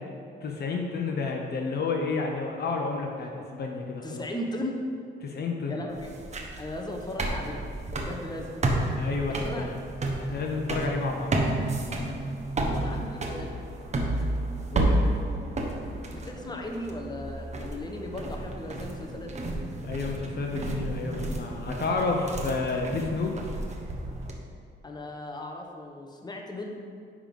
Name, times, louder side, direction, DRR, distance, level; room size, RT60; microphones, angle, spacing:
voice 1, 0.4-4.2 5.2-5.8 9.0-9.7 10.2-11.3 14.7-15.0 19.8-23.4, left 4 dB, 55° left, 1 dB, 0.8 m, -30 dB
voice 2, 4.0-4.8 5.7-6.1 6.6-7.6 7.9-8.5 9.3-9.7 12.7-13.5 16.1-19.3 24.8-26.7, left 1 dB, 20° left, 1 dB, 1.1 m, -37 dB
sound 1, 5.9-24.3, right 1 dB, 35° right, 1.1 m, -31 dB
9.8 x 3.8 x 5.3 m, 2.3 s
cardioid pair, 90°, 20 cm